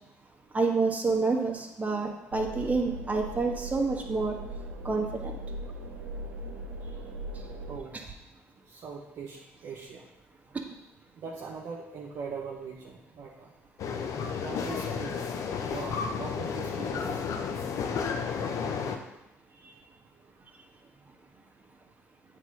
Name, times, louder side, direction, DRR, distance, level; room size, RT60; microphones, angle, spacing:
voice 1, 0.5-4.4 4.8-5.4, right 3 dB, 25° right, 1 dB, 1.5 m, -28 dB
sound 1, 2.3-7.8, right 1 dB, 85° right, 1.0 m, -39 dB
voice 2, 8.7-10.1 11.1-13.5 14.4-15.2 15.6-17.3 19.5-19.8, right 5 dB, 55° right, -3 dB, 1.1 m, -41 dB
sound 2, 13.8-19.0, left 6 dB, 60° left, 0.9 m, -32 dB
8.4 x 3.9 x 5.3 m, 0.90 s
hypercardioid pair, 55°, 6 cm